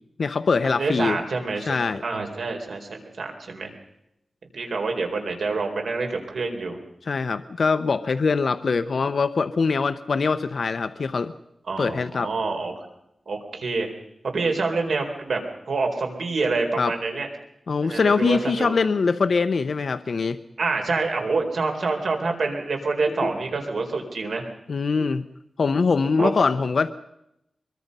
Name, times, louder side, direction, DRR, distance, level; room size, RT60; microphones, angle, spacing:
voice 1, 0.2-1.2 1.7-2.0 7.1-11.3 11.8-12.3 16.8-16.9 17.7-20.4 23.2-23.3 24.7-25.2 25.6-26.9, left 4 dB, 60° left, 11 dB, 0.8 m, -23 dB
voice 2, 0.8-3.7 4.5-6.8 11.7-12.9 13.3-13.9 14.3-15.4 15.7-17.3 17.8-18.8 20.6-24.5 26.2-26.3, right 3 dB, 85° right, 3 dB, 4.3 m, -27 dB
24.5 x 22.5 x 5.5 m, 0.82 s
wide cardioid pair, 145°, 0 cm